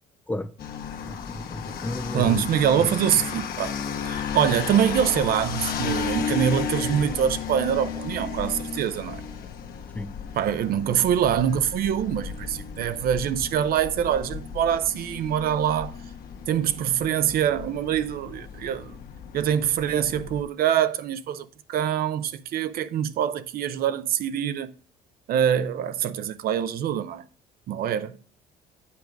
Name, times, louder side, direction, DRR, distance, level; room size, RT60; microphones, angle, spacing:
sound 1, 0.6-20.4, left 7 dB, 60° left, 1.2 m, -34 dB
voice 1, 1.0-2.5 2.8-2.9 9.9-10.2, left 1 dB, 10° left, 0.4 m, -33 dB
voice 2, 2.1-3.7 4.0-9.2 10.4-16.0 16.5-19.0 19.3-24.7 25.3-27.2 27.7-28.2, right 9 dB, 60° right, 0.6 m, -24 dB
8.5 x 4.6 x 5.1 m
cardioid pair, 110°, 17 cm